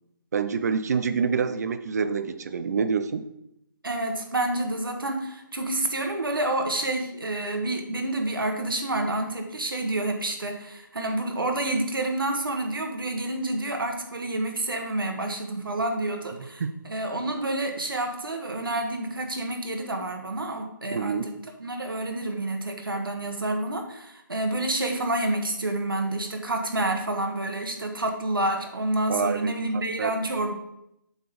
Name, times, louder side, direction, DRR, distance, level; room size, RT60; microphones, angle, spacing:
voice 1, 0.3-3.3 16.6-16.8 20.9-21.3 29.1-30.1, right 5 dB, 50° right, 10 dB, 0.6 m, -27 dB
voice 2, 3.8-21.3 21.6-30.5, right 2 dB, 80° right, 3 dB, 1.5 m, -28 dB
7.8 x 4.1 x 5.1 m, 0.81 s
figure-of-eight pair, 150°, 11 cm